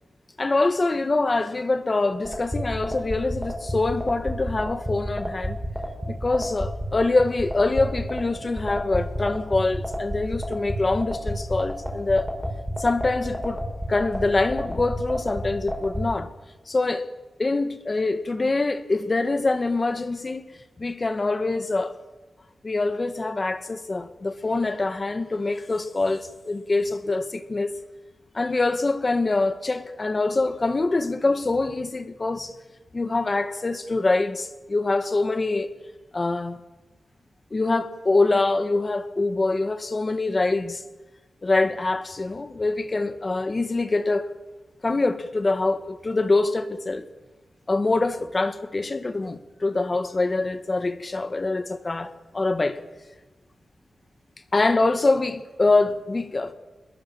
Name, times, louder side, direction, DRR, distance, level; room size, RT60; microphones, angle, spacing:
voice 1, 0.4-5.6 6.1-12.3 12.8-13.6 13.9-16.3 16.7-17.0 17.4-20.4 20.8-21.9 22.6-27.7 28.3-32.5 32.9-35.7 36.1-36.6 37.5-40.8 41.4-44.3 44.8-47.0 47.7-52.8 54.5-56.5, left 3 dB, 30° left, 1.7 m, -24 dB
sound 1, 2.2-16.0, equal, 5° right, 6.8 m, -29 dB
27.0 x 21.5 x 7.3 m
wide cardioid pair, 125°, 0 cm